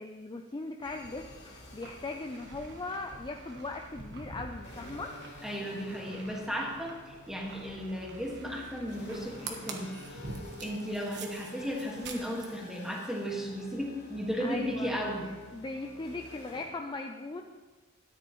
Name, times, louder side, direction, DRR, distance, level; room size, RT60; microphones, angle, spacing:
voice 1, 0.0-5.2 14.4-14.9 15.5-17.4, left 2 dB, 20° left, 3 dB, 0.4 m, -39 dB
sound 1, 0.8-16.7, left 1 dB, 55° left, 2.6 m, -50 dB
sound 2, 0.8-12.6, right 3 dB, 55° right, 1.3 m, -47 dB
voice 2, 5.4-10.2 10.6-15.3, equal, ahead, -2 dB, 1.6 m, -35 dB
13.0 x 9.9 x 3.1 m, 1.3 s
head